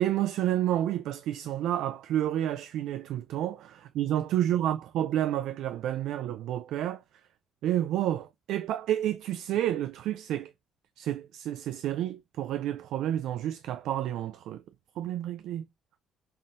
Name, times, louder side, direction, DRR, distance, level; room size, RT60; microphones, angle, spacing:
voice 1, 0.0-7.0 7.6-10.5 11.0-14.6 15.0-15.7, right 12 dB, 75° right, 0.3 m, -30 dB
5.5 x 2.5 x 2.5 m
cardioid pair, 100°, 0 cm